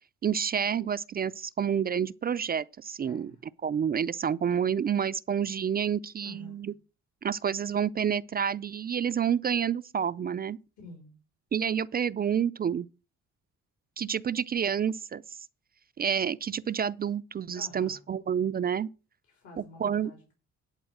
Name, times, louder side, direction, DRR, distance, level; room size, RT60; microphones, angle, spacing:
voice 1, 0.2-3.3 3.6-6.7 7.2-10.6 11.5-12.9 14.0-15.2 16.0-18.9 19.6-20.1, right 8 dB, 30° right, 0.4 m, -29 dB
voice 2, 3.0-3.4 6.2-6.7 10.8-11.1 17.5-18.0 19.3-20.3, left 3 dB, 70° left, 3.4 m, -49 dB
11.0 x 4.0 x 7.7 m
cardioid pair, 90°, 30 cm